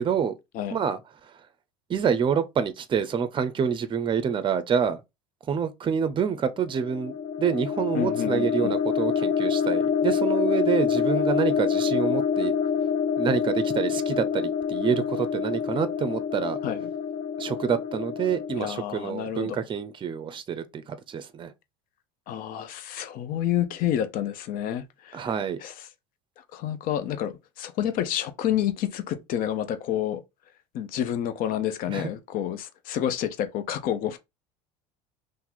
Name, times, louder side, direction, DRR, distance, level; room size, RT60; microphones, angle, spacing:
voice 1, 0.0-0.4 0.7-1.3 1.9-5.0 5.5-12.5 13.2-16.6 17.4-21.5 25.1-25.6 31.9-32.1, right 7 dB, 30° right, 0.6 m, -27 dB
sound 1, 6.7-18.6, left 7 dB, 35° left, 0.3 m, -26 dB
voice 2, 7.9-8.7 16.6-16.8 18.6-19.6 22.3-25.3 25.6-25.7 26.5-30.2 30.7-34.2, left 10 dB, 55° left, 0.7 m, -29 dB
2.9 x 2.6 x 3.8 m
hypercardioid pair, 85°, 17 cm